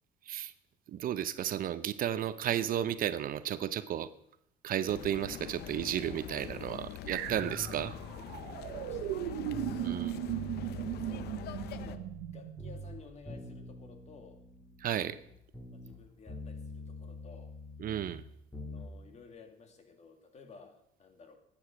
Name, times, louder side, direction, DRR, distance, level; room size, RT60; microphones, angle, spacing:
voice 1, 0.9-4.1 4.6-7.9 9.8-10.1 14.8-15.2 17.8-18.2, right 10 dB, 55° right, 14 dB, 0.7 m, -33 dB
sound 1, 4.9-12.0, left 12 dB, 75° left, 0.8 m, -44 dB
voice 2, 7.1-10.4 10.7-14.4 15.7-17.6 18.6-21.4, left 5 dB, 40° left, 5 dB, 2.2 m, -56 dB
sound 2, 7.1-12.8, right 13 dB, 85° right, 0.8 m, -38 dB
sound 3, 7.3-10.0 10.3-12.3 12.6-16.0 16.3-18.9 19.2-19.3, left 1 dB, 10° left, 3.3 m, -46 dB
12.5 x 8.8 x 5.9 m, 0.75 s
cardioid pair, 110°, 17 cm